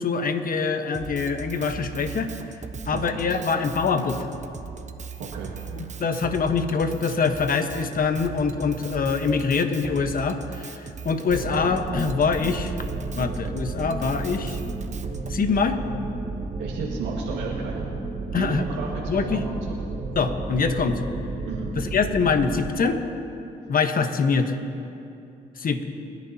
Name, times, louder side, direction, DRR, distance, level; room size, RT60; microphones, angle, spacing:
voice 1, 0.0-2.3 2.9-4.2 6.0-10.7 11.0-12.7 13.2-14.6 15.3-15.8 18.3-18.6 19.1-19.4 20.2-21.0 21.7-23.0 23.7-24.6 25.6-25.8, left 5 dB, 50° left, 7 dB, 1.3 m, -24 dB
Drum kit, 0.9-15.4, right 6 dB, 40° right, 1.0 m, -38 dB
voice 2, 2.9-3.5 5.2-5.5 16.6-17.9 18.4-19.4 21.5-21.7, right 4 dB, 85° right, -4 dB, 1.8 m, -33 dB
sound 1, 11.3-22.7, right 3 dB, 20° right, 1.8 m, -32 dB
29.0 x 10.5 x 2.9 m, 2.7 s
supercardioid pair, 60°, 18 cm